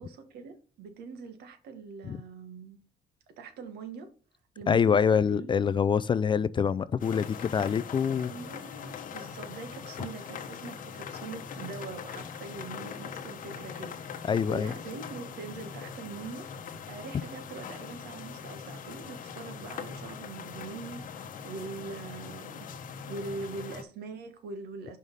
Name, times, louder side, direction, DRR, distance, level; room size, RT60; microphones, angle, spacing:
voice 1, 0.0-2.8 3.4-4.1 4.5-5.5 8.2-22.7 23.1-25.0, right 4 dB, 70° right, 1.6 m, -43 dB
voice 2, 4.7-8.3 14.3-14.7, left 7 dB, 30° left, 0.4 m, -25 dB
sound 1, 7.0-23.8, left 6 dB, 55° left, 1.0 m, -41 dB
5.6 x 4.8 x 5.3 m
cardioid pair, 110°, 17 cm